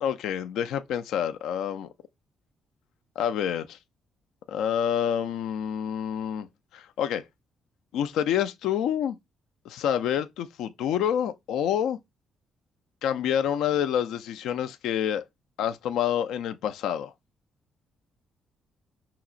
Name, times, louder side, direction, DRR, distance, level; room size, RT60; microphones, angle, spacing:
voice 1, 0.0-1.9 3.2-3.8 4.5-6.5 6.7-7.3 7.9-9.2 9.7-12.0 13.0-15.2 15.6-17.1, left 9 dB, 85° left, 0.4 m, -27 dB
5.8 x 2.8 x 2.4 m
cardioid pair, 90°, 0 cm